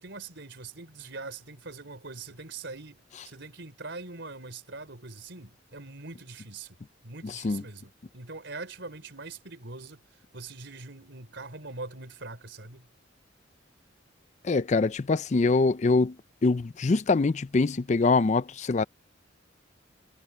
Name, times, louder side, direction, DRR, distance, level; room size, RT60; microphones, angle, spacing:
voice 1, 0.0-6.8 7.0-10.0 10.3-12.9, right 3 dB, 65° right, 4.1 m, -42 dB
voice 2, 7.2-7.6 14.4-16.2 16.4-18.8, left 3 dB, 35° left, 0.4 m, -24 dB
head